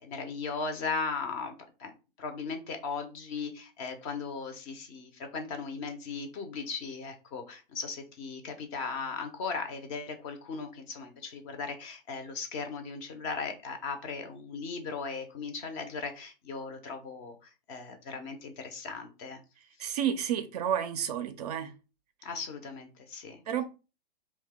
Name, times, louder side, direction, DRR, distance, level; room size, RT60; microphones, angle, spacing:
voice 1, 0.0-1.5 1.8-1.9 2.2-19.4 22.2-23.4, left 4 dB, 25° left, 0.5 m, -37 dB
voice 2, 19.8-21.7 23.5-23.6, right 9 dB, 45° right, 0.4 m, -30 dB
2.7 x 2.1 x 3.5 m
figure-of-eight pair, 110°, 29 cm